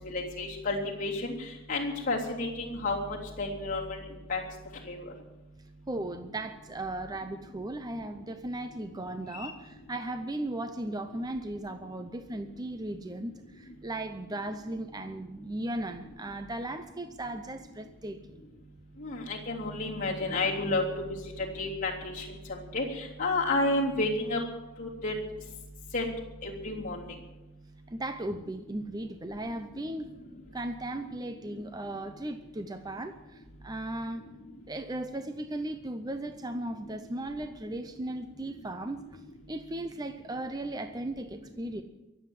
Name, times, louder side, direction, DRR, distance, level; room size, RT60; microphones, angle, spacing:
voice 1, 0.0-1.3 1.7-4.0 4.3-4.4 4.8-5.0 9.4-9.5 19.0-24.4 24.8-25.1 25.9-26.1 26.4-27.0, left 2 dB, 40° left, -4 dB, 3.3 m, -31 dB
voice 2, 5.9-18.4 27.9-30.1 30.5-34.3 34.7-39.2 39.5-41.8, right 1 dB, 20° right, 8 dB, 0.6 m, -37 dB
23.0 x 7.9 x 7.4 m, 1.0 s
head